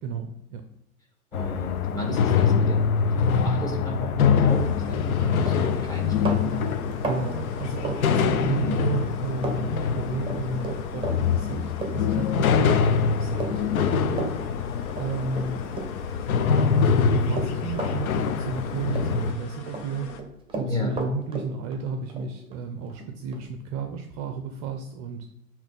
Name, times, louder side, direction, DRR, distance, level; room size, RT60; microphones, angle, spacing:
voice 1, 0.0-0.6 7.0-14.4 15.0-15.7 16.5-20.2 20.5-25.3, right 4 dB, 35° right, 6 dB, 0.7 m, -33 dB
sound 1, 1.3-19.3, left 6 dB, 70° left, 0.8 m, -24 dB
voice 2, 1.3-6.7 8.5-8.8 20.6-20.9, equal, 10° left, -1 dB, 2.3 m, -32 dB
sound 2, 4.5-20.2, left 6 dB, 50° left, 1.3 m, -43 dB
Run, 4.9-5.1 5.4-8.7 9.0-9.6 9.8-16.2 16.5-18.6 18.9-19.8 20.1-23.4, right 3 dB, 10° right, 1.4 m, -34 dB
8.6 x 3.3 x 5.4 m, 0.82 s
hypercardioid pair, 110°, 44 cm